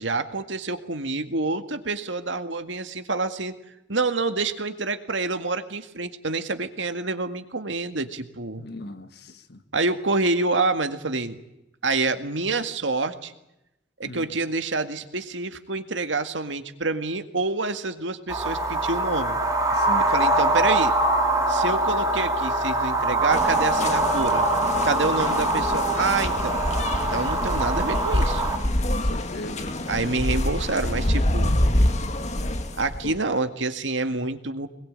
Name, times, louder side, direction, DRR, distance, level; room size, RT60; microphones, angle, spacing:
voice 1, 0.0-3.5 3.9-8.6 9.7-11.4 11.8-13.3 14.0-19.4 20.1-20.9 21.5-24.5 24.8-26.6 27.1-28.4 29.9-31.6 32.8-34.7, right 3 dB, 80° right, 2.0 m, -27 dB
voice 2, 8.6-9.6 14.0-14.3 19.7-20.1 28.8-29.7 33.0-33.1, left 1 dB, 60° left, 1.7 m, -38 dB
sound 1, 18.3-28.6, right 2 dB, 20° right, 4.4 m, -23 dB
sound 2, 23.3-33.2, left 1 dB, 40° left, 2.0 m, -26 dB
23.5 x 21.5 x 8.9 m
head